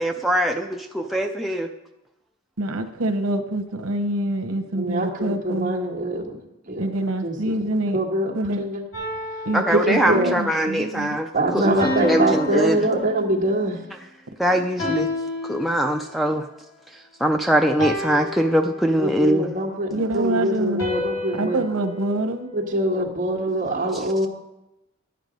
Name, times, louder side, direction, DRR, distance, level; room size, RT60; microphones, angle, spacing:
voice 1, 0.0-1.7 9.5-11.3 11.5-12.8 14.4-15.1 15.4-16.5 17.2-19.5 23.9-24.3, right 1 dB, ahead, 2 dB, 0.3 m, -22 dB
voice 2, 2.6-5.8 6.8-8.0 8.3-8.6 9.4-11.2 11.5-11.8 14.6-14.9 19.9-20.9 21.4-22.5, right 1 dB, 90° right, 5 dB, 0.9 m, -26 dB
voice 3, 4.7-6.9 7.2-7.3 7.6-8.8 9.7-10.3 11.3-13.8 19.0-21.6 22.5-24.3, right 1 dB, 35° right, 0 dB, 1.6 m, -24 dB
sound 1, 8.9-10.4 11.8-13.6 14.8-16.2 17.8-19.3 20.8-23.0, left 1 dB, 75° left, 4.7 m, -31 dB
11.5 x 9.1 x 5.1 m, 0.94 s
head